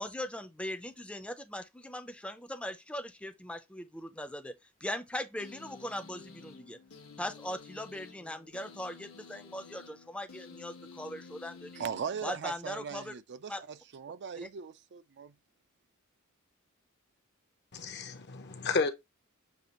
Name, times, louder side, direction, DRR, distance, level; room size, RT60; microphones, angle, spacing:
voice 1, 0.0-4.5 4.8-6.8 7.2-11.9 12.2-13.1 13.5-13.6, left 1 dB, 5° left, 0.5 m, -40 dB
sound 1, 5.4-12.8, left 4 dB, 70° left, 1.1 m, -52 dB
voice 2, 11.8-15.3, right 7 dB, 55° right, 0.4 m, -39 dB
voice 3, 17.7-18.9, left 4 dB, 50° left, 0.8 m, -32 dB
6.7 x 2.4 x 2.9 m
head